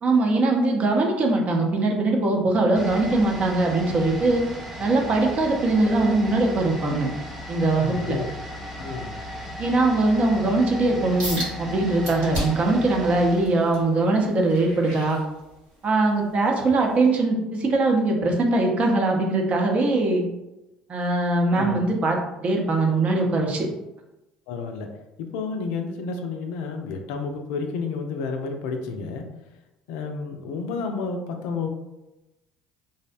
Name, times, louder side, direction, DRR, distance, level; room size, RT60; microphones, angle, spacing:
voice 1, 0.0-4.4 4.8-7.1 7.5-8.2 9.6-15.2 15.8-20.2 20.9-22.2 22.4-23.7, right 2 dB, 40° right, 1 dB, 0.6 m, -21 dB
sound 1, 2.7-14.5 14.7-14.8, equal, 5° right, 0.8 m, -36 dB
voice 2, 7.8-8.3 8.8-9.1 21.6-21.8 24.5-24.9 25.2-29.3 29.9-31.7, left 4 dB, 70° left, 4 dB, 0.3 m, -31 dB
sound 2, 11.2-11.5 12.0-12.7 13.2-15.8 16.3-16.5 17.1-17.2, equal, 75° right, 1.3 m, -33 dB
2.6 x 2.0 x 2.4 m, 0.98 s
hypercardioid pair, 60°, 3 cm